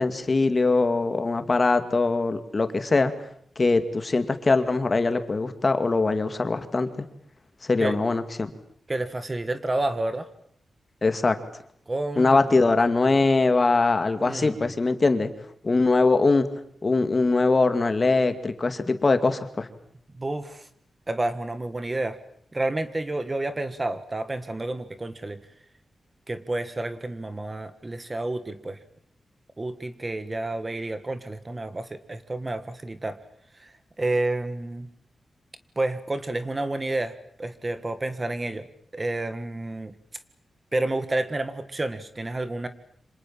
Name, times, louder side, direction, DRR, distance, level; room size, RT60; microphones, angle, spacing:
voice 1, 0.0-3.1 3.6-7.1 7.6-8.5 11.0-11.4 12.2-15.3 15.6-16.5 16.8-19.7, left 3 dB, 30° left, 9 dB, 2.2 m, -22 dB
voice 2, 8.9-10.3 11.9-12.4 14.2-14.6 20.1-20.7 21.1-22.2 22.5-25.4 26.3-28.8 29.6-33.2 33.6-34.9 35.7-37.1 37.4-38.7 38.9-39.9 40.7-42.7, right 2 dB, 20° right, 11 dB, 1.6 m, -30 dB
28.0 x 26.5 x 7.5 m, 0.65 s
wide cardioid pair, 145°, 0 cm